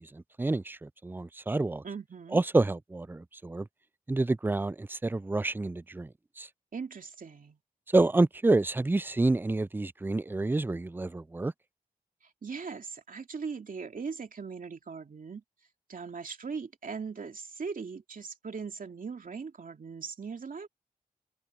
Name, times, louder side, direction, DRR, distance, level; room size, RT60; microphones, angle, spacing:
voice 1, 0.0-1.8 2.3-3.7 4.1-6.1 6.4-6.5 7.9-11.5, right 2 dB, 15° right, 0.4 m, -28 dB
voice 2, 1.8-2.4 6.7-7.6 12.4-15.4 15.9-20.7, right 5 dB, 60° right, 2.7 m, -39 dB
cardioid pair, 65°, 16 cm